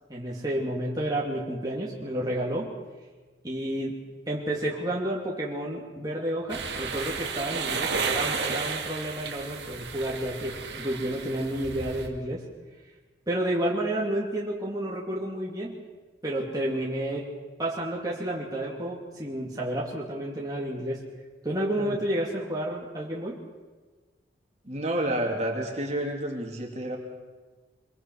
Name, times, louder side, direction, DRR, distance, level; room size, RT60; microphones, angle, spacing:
voice 1, 0.1-2.7 3.4-12.5 13.3-15.8 16.2-21.0 21.4-23.4, right 1 dB, 20° right, -4 dB, 2.6 m, -30 dB
sound 1, 6.5-12.1, right 5 dB, 70° right, 2.1 m, -32 dB
voice 2, 24.6-27.0, right 1 dB, 40° right, 0 dB, 2.9 m, -29 dB
25.0 x 22.5 x 4.8 m, 1.3 s
head